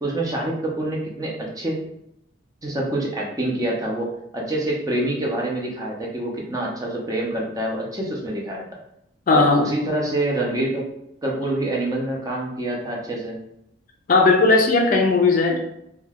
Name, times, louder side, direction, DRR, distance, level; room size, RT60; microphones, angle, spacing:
voice 1, 0.0-1.8 2.6-8.6 9.3-10.9 11.2-13.4, right 1 dB, 20° right, -2 dB, 0.5 m, -26 dB
voice 2, 9.3-9.7 14.1-15.6, left 3 dB, 45° left, 2 dB, 0.4 m, -17 dB
2.3 x 2.2 x 3.3 m, 0.80 s
head